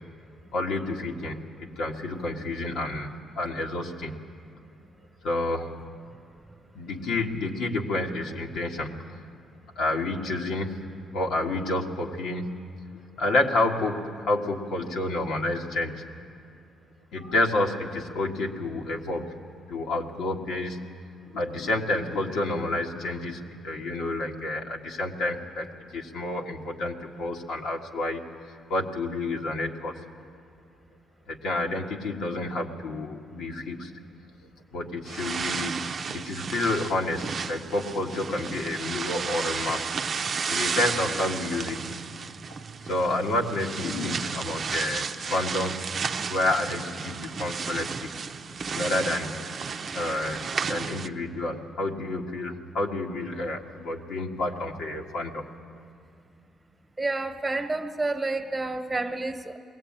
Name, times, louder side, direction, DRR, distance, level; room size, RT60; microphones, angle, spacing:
voice 1, 0.5-4.1 5.2-5.7 6.8-9.1 9.8-12.8 13.2-16.0 17.1-19.4 19.7-25.7 25.9-28.2 28.5-30.0 31.3-34.0 34.7-40.2 40.5-42.0 42.5-45.8 46.3-48.1 48.5-49.4 49.9-55.5, left 2 dB, 80° left, 0 dB, 1.8 m, -29 dB
sound 1, 35.0-51.1, right 5 dB, 45° right, 0.6 m, -33 dB
voice 2, 57.0-59.6, right 2 dB, 10° right, 4 dB, 1.3 m, -29 dB
21.0 x 17.0 x 8.8 m, 2.4 s
cardioid pair, 90°, 0 cm